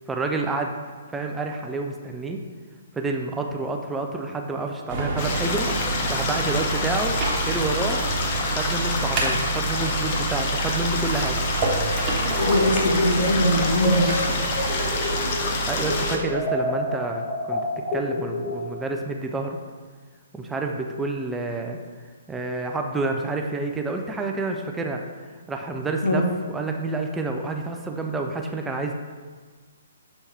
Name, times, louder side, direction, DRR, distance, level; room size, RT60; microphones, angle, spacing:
voice 1, 0.1-0.7 1.1-2.4 2.9-5.7 6.1-8.0 8.6-11.4 15.7-17.6 17.9-19.6 20.3-21.8 22.3-25.0 25.5-26.2 26.5-28.9, right 3 dB, 10° right, 2 dB, 0.4 m, -29 dB
sound 1, 4.9-16.1, right 3 dB, 25° right, 1.2 m, -28 dB
sound 2, 5.2-16.2, left 3 dB, 35° left, 0.8 m, -28 dB
sound 3, 12.3-15.6 15.8-18.9, left 1 dB, 10° left, 1.3 m, -28 dB
voice 2, 12.4-14.4 26.0-26.3, equal, 70° left, 3 dB, 0.9 m, -22 dB
7.0 x 4.1 x 3.5 m, 1.5 s
figure-of-eight pair, 125°, 0 cm